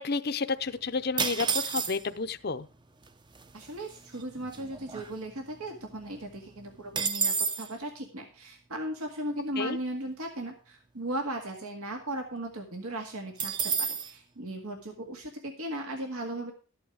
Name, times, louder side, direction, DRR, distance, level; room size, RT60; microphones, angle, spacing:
voice 1, 0.0-2.7 9.6-9.8, left 4 dB, 45° left, 10 dB, 0.6 m, -31 dB
sound 1, 1.2-2.3 3.1-3.2 3.3-3.7 4.1-5.6 5.9-6.0 6.3-7.7 13.4-14.1, right 6 dB, 20° right, 0.6 m, -30 dB
voice 2, 3.5-16.5, right 1 dB, 85° right, 4 dB, 2.0 m, -37 dB
13.0 x 8.8 x 4.8 m, 0.37 s
head